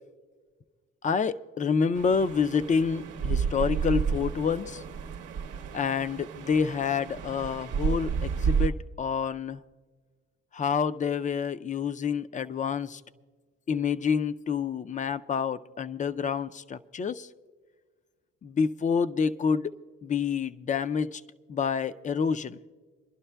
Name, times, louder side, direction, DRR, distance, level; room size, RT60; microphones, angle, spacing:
voice 1, 1.0-4.8 5.7-9.6 10.5-13.0 13.7-17.3 18.4-19.7 20.0-21.2 21.5-22.6, left 6 dB, 25° left, 0.4 m, -28 dB
sound 1, 1.9-8.7, right 6 dB, 90° right, 0.8 m, -31 dB
28.0 x 11.5 x 2.2 m
cardioid pair, 90°, 30 cm